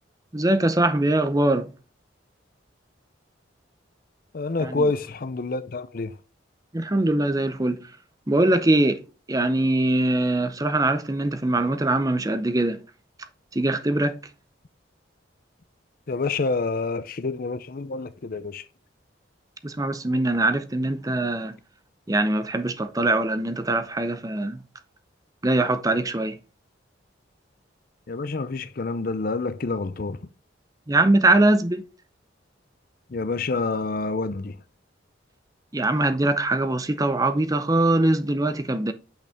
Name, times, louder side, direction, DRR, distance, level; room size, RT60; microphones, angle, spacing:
voice 1, 0.3-1.7 4.6-4.9 6.7-7.8 8.3-9.0 9.3-12.8 13.5-14.2 19.6-21.6 22.1-24.6 25.4-26.4 30.9-31.8 35.7-38.9, right 2 dB, 20° right, 0.6 m, -22 dB
voice 2, 4.3-6.2 16.1-18.6 28.1-30.2 33.1-34.6, left 3 dB, 45° left, 0.5 m, -27 dB
8.8 x 5.3 x 3.5 m
head